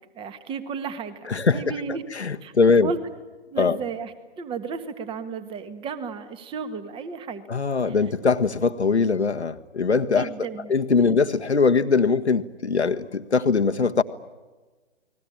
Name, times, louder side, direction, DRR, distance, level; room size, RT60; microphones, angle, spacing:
voice 1, 0.2-2.0 2.4-2.5 2.8-3.0 3.5-7.5 7.8-8.0 10.1-10.7 11.1-11.2, right 5 dB, 15° right, 12 dB, 1.8 m, -33 dB
voice 2, 1.3-1.6 2.1-2.9 3.6-3.8 7.5-10.3 10.7-14.0, left 4 dB, 80° left, 8 dB, 1.6 m, -21 dB
30.0 x 20.5 x 8.8 m, 1.3 s
figure-of-eight pair, 130°, 33 cm